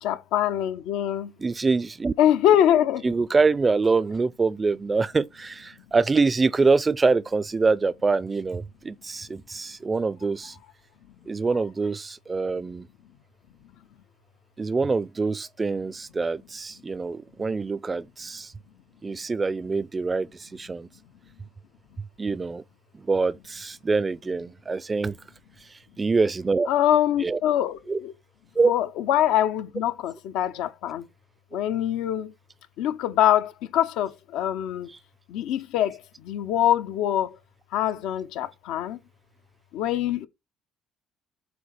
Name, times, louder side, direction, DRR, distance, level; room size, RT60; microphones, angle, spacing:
voice 1, 0.0-1.3 2.2-3.0 26.7-28.1 28.7-31.0 31.5-32.3 32.8-34.9 35.3-36.0 36.2-37.3 37.7-39.0 39.7-40.3, left 11 dB, 80° left, 0.7 m, -24 dB
voice 2, 1.4-2.1 3.0-10.6 11.3-12.9 14.6-18.5 19.0-20.9 22.2-22.6 22.9-25.2 26.0-26.7 27.2-27.4 27.9-28.0 28.6-28.7, right 4 dB, 25° right, 0.4 m, -25 dB
7.9 x 2.8 x 5.9 m
supercardioid pair, 95°, 0 cm